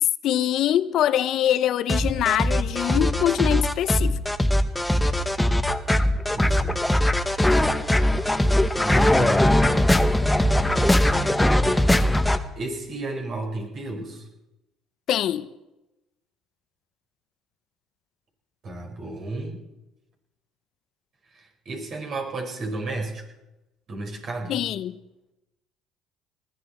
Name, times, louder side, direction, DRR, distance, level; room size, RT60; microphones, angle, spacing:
voice 1, 0.0-4.2 15.1-15.5 24.5-25.0, left 11 dB, 65° left, 0.6 m, -23 dB
sound 1, 1.9-12.4, left 1 dB, 10° left, 1.0 m, -21 dB
voice 2, 6.3-6.8 8.8-10.3 11.6-14.3 18.6-19.6 21.3-23.2 23.9-24.6, right 2 dB, 55° right, 5.1 m, -33 dB
20.5 x 14.5 x 4.4 m
supercardioid pair, 85°, 0 cm